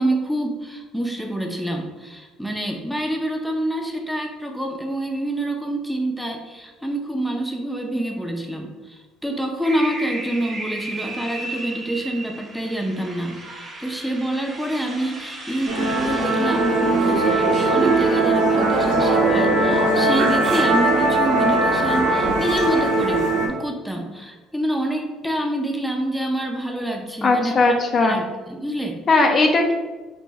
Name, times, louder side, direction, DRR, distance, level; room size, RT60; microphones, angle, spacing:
voice 1, 0.0-29.0, right 1 dB, ahead, 1 dB, 0.6 m, -27 dB
sound 1, 9.6-18.2, right 2 dB, 35° right, 0.8 m, -35 dB
Musical instrument, 15.7-23.5, right 2 dB, 85° right, 0.8 m, -19 dB
voice 2, 27.2-28.2 29.1-29.7, left 3 dB, 45° left, 3 dB, 0.4 m, -18 dB
3.4 x 2.5 x 3.1 m, 1.2 s
supercardioid pair, 75°, 0 cm